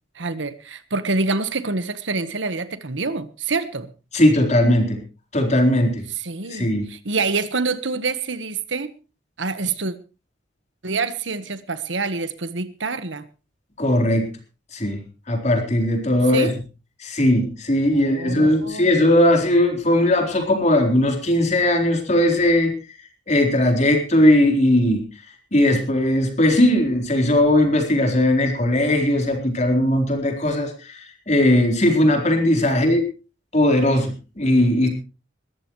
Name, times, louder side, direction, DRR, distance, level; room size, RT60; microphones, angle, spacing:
voice 1, 0.1-3.9 6.2-8.9 9.4-9.9 10.8-13.2 16.3-16.5 17.9-19.1 32.6-32.7, right 3 dB, 80° right, 1.3 m, -26 dB
voice 2, 4.1-5.0 5.3-6.0 6.5-6.9 13.8-14.3 14.7-15.0 15.3-16.5 17.0-22.7 23.3-25.0 25.5-33.0 33.5-34.9, left 1 dB, 40° left, 4.1 m, -18 dB
21.5 x 14.0 x 3.2 m
head